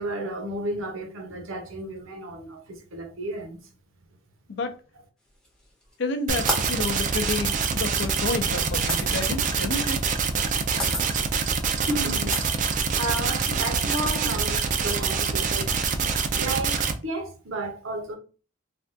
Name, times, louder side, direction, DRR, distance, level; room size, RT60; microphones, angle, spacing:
voice 1, 0.0-3.6 11.7-15.7 16.4-18.2, right 1 dB, 70° right, 0.8 m, -33 dB
sound 1, 5.4-5.9 6.5-9.1 10.2-10.5 10.8-11.0 11.6-11.7 12.3-13.3, equal, 5° left, 0.6 m, -31 dB
voice 2, 6.0-10.0, left 3 dB, 55° left, 0.4 m, -30 dB
sound 2, 6.3-16.9, right 5 dB, 35° right, 0.3 m, -25 dB
3.3 x 2.3 x 2.6 m
head